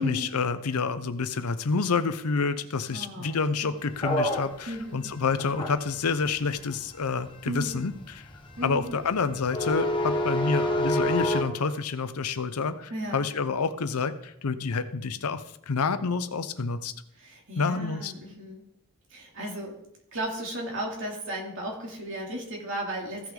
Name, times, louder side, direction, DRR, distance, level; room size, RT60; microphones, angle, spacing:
voice 1, 0.0-8.2 8.6-16.9 17.6-18.1, left 4 dB, 85° left, 12 dB, 0.7 m, -28 dB
voice 2, 2.9-3.7 4.7-5.1 7.4-7.8 8.6-9.0 12.9-13.2 17.2-18.6 19.1-19.8 20.1-23.3, equal, 55° right, -1 dB, 2.7 m, -35 dB
sound 1, 3.9-11.4, equal, 20° left, 1.2 m, -29 dB
15.5 x 6.0 x 3.8 m, 0.75 s
head